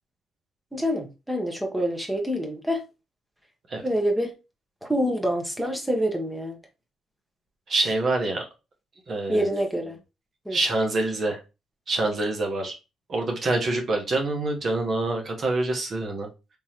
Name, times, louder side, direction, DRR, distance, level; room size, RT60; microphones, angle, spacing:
voice 1, 0.7-2.8 3.8-4.3 4.8-6.6 9.3-10.0 10.4-10.6, equal, 5° right, 1.0 m, -26 dB
voice 2, 7.7-8.5 9.1-9.5 10.5-11.4 11.9-12.7 13.1-16.3, right 2 dB, 45° right, 1.0 m, -26 dB
3.7 x 3.0 x 2.8 m
cardioid pair, 90°, 0 cm